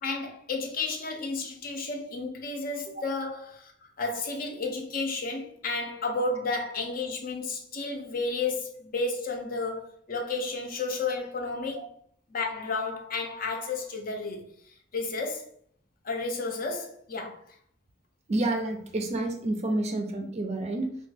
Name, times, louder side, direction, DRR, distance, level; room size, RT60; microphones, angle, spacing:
voice 1, 0.0-3.7 4.0-11.9 12.3-14.5 14.9-15.5 16.0-17.4, left 3 dB, 50° left, 0.6 m, -32 dB
voice 2, 18.3-21.0, right 2 dB, 35° right, 0.4 m, -29 dB
3.1 x 2.2 x 3.2 m
head